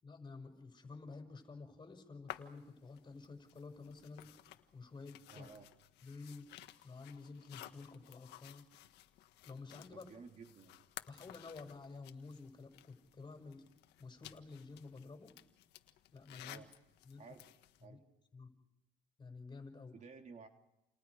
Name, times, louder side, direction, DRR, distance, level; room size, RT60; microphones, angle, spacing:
voice 1, 0.0-4.3 4.7-5.5 6.0-6.5 6.8-8.7 9.4-10.1 11.1-13.6 14.0-15.3 16.1-16.6 17.0-17.2 17.8-18.0 18.3-18.5 19.2-19.9, left 4 dB, 25° left, 6 dB, 6.1 m, -51 dB
sound 1, 2.3-17.9, left 14 dB, 85° left, 1.7 m, -56 dB
voice 2, 5.3-5.7 9.9-10.9 16.4-16.7 17.2-17.5 17.8-18.0 19.9-20.5, right 5 dB, 45° right, 4 dB, 3.5 m, -54 dB
29.5 x 29.5 x 4.9 m, 0.90 s
cardioid pair, 110°, 17 cm